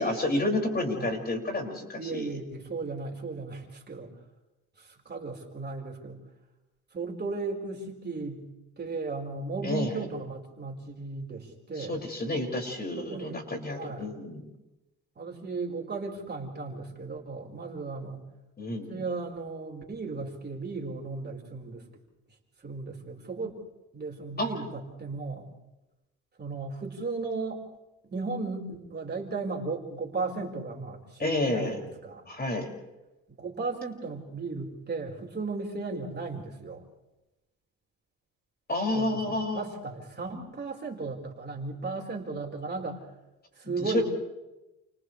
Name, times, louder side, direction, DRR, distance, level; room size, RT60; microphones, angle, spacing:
voice 1, 0.0-2.3 9.6-10.0 11.8-14.5 18.6-19.0 24.4-24.6 31.2-31.8 32.3-32.7 38.7-39.6 43.6-44.1, left 2 dB, 30° left, 1 dB, 6.1 m, -30 dB
voice 2, 1.9-4.1 4.8-6.2 6.9-8.4 8.8-12.0 13.0-13.4 13.7-14.1 15.2-18.2 18.9-21.8 22.6-23.7 23.9-25.5 26.4-27.6 28.0-32.2 33.4-36.8 38.9-43.0 43.5-44.1, right 3 dB, 35° right, 0 dB, 4.6 m, -35 dB
30.0 x 29.0 x 3.3 m, 1.0 s
cardioid pair, 90°, 30 cm